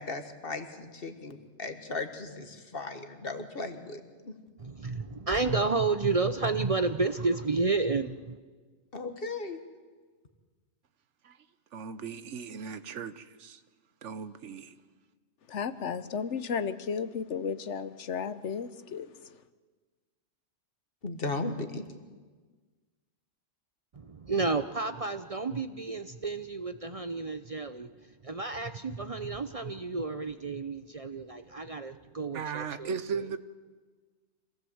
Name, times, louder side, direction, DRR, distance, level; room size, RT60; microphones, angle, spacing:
voice 1, 0.0-4.3 8.9-9.6 21.0-21.8, left 3 dB, 50° left, 1.8 m, -36 dB
voice 2, 4.6-8.4 24.0-27.9 28.2-33.2, right 3 dB, 35° right, 0.7 m, -31 dB
voice 3, 11.7-13.6 14.0-14.7 32.3-33.4, right 6 dB, 85° right, 1.2 m, -37 dB
voice 4, 15.5-19.1, left 6 dB, 80° left, 1.2 m, -33 dB
25.0 x 16.5 x 7.9 m
omnidirectional pair, 1.2 m